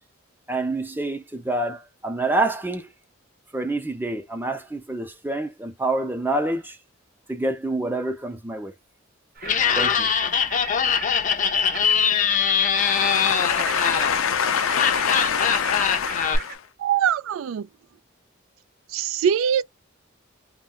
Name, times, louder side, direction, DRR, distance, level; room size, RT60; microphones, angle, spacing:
voice 1, 0.5-2.9 3.5-6.8 7.3-8.7 9.8-10.1, right 2 dB, 10° right, 0.6 m, -27 dB
Laughter, 9.4-16.4, left 7 dB, 40° left, 0.5 m, -22 dB
sound 1, 9.4-16.6, right 5 dB, 50° right, 0.7 m, -37 dB
voice 2, 12.8-16.6, left 7 dB, 85° left, 0.5 m, -25 dB
voice 3, 16.8-17.7 18.9-19.6, right 8 dB, 75° right, 0.3 m, -22 dB
2.2 x 2.2 x 3.7 m
head